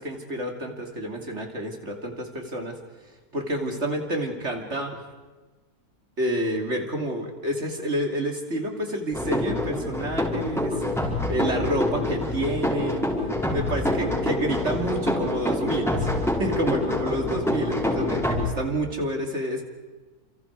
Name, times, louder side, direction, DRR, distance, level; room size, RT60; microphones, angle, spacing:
voice 1, 0.0-2.8 3.3-5.0 6.2-13.1 13.5-16.1 16.4-19.6, right 1 dB, 45° right, 3 dB, 3.2 m, -29 dB
sound 1, 9.1-18.4, left 1 dB, ahead, 5.0 m, -26 dB
29.5 x 28.0 x 4.8 m, 1.2 s
omnidirectional pair, 1.6 m